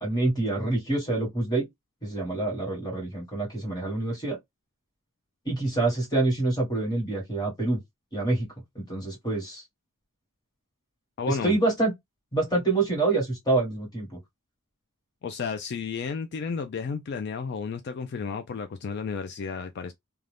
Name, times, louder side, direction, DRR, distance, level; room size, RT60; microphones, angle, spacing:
voice 1, 0.0-1.7 2.0-4.4 5.4-7.8 8.1-8.5 8.7-9.6 11.3-11.9 12.3-14.1, right 2 dB, 20° left, 1.4 m, -26 dB
voice 2, 11.2-11.6 15.2-19.9, left 5 dB, 55° left, 0.3 m, -32 dB
2.5 x 2.3 x 3.3 m
head